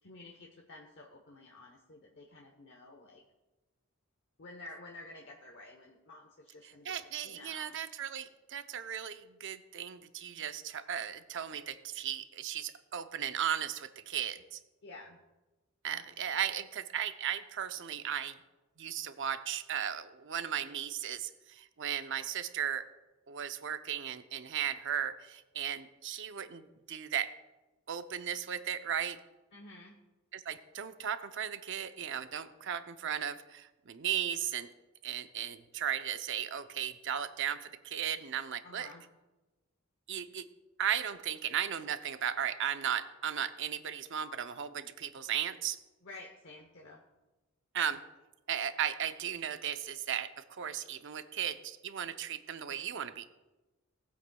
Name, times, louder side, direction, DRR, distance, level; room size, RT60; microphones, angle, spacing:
voice 1, 0.0-3.2 4.4-7.8 14.8-15.2 15.9-16.4 29.5-30.0 38.6-39.0 46.0-47.0, left 2 dB, 60° left, 1 dB, 1.0 m, -51 dB
voice 2, 6.8-14.6 15.8-18.4 18.8-22.9 23.3-27.3 27.9-29.2 30.3-34.7 35.0-38.9 40.1-40.4 40.8-45.8 47.7-48.0 48.5-53.3, right 9 dB, 60° right, 10 dB, 0.6 m, -36 dB
18.5 x 8.4 x 2.3 m, 1.1 s
head